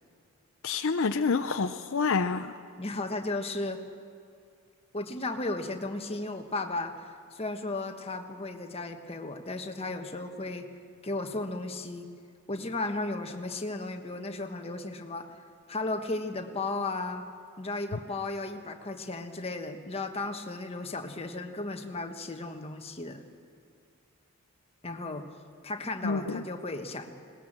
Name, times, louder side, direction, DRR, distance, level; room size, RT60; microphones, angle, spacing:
voice 1, 0.6-2.5 26.0-26.4, left 4 dB, 60° left, 8 dB, 0.6 m, -28 dB
voice 2, 2.8-3.8 4.9-10.7 11.0-12.1 12.5-15.4 15.7-17.2 17.6-23.2 24.8-25.2 25.6-27.1, left 2 dB, 25° left, 5 dB, 1.3 m, -35 dB
20.5 x 18.5 x 7.5 m, 2.3 s
head